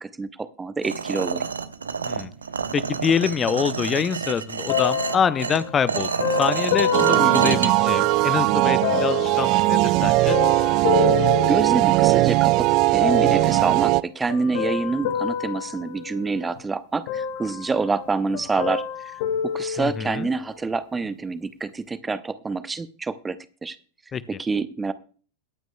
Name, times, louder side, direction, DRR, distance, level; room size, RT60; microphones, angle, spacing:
voice 1, 0.0-1.4 11.1-18.8 19.5-23.4 23.6-23.8 24.4-24.9, right 4 dB, 15° right, 14 dB, 0.8 m, -27 dB
sound 1, 0.8-7.7, right 5 dB, 70° right, 0.8 m, -28 dB
voice 2, 2.7-6.1 6.4-10.4 19.8-20.3 24.1-24.4, left 7 dB, 20° left, 15 dB, 0.6 m, -25 dB
sound 2, 4.7-8.3 8.8-12.3 13.0-13.7 14.3-16.6 17.1-18.1 18.3-20.4 21.0-21.1, left 7 dB, 50° left, 1.1 m, -28 dB
sound 3, 6.9-14.0, right 20 dB, 40° right, 0.4 m, -19 dB
22.5 x 9.1 x 2.3 m, 0.40 s
figure-of-eight pair, 90°, 0 cm